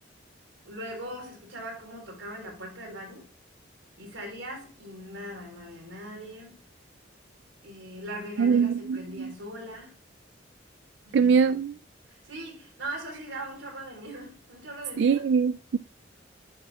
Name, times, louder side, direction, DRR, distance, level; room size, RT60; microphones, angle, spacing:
voice 1, 0.6-3.3 4.0-6.6 7.6-9.9 11.1-11.6 12.1-15.2, right 1 dB, 90° right, 3.8 m, -40 dB
voice 2, 8.4-9.3 11.1-11.7 15.0-15.8, right 6 dB, 65° right, 0.3 m, -23 dB
10.5 x 6.9 x 2.3 m
head